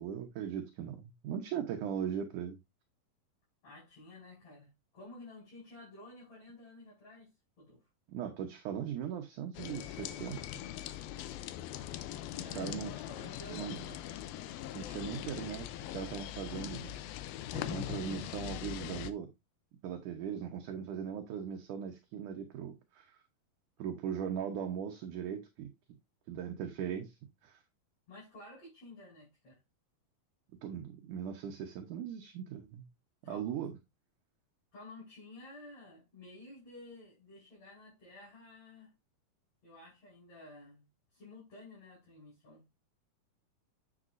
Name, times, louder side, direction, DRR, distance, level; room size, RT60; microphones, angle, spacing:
voice 1, 0.0-2.6 8.1-10.4 12.3-12.9 13.5-13.8 14.7-17.0 17.5-19.3 19.8-23.1 23.8-25.7 26.3-27.2 27.4-27.6 30.6-32.9 33.3-33.7, right 8 dB, 70° right, 2.4 m, -39 dB
voice 2, 3.6-7.3 7.6-7.8 12.4-14.3 28.1-29.6 33.2-33.5 34.7-38.9 39.6-40.8 41.1-42.7, left 2 dB, 45° left, 6.3 m, -52 dB
sound 1, 9.5-19.1, left 12 dB, 85° left, 2.5 m, -41 dB
9.3 x 7.8 x 2.6 m
omnidirectional pair, 4.2 m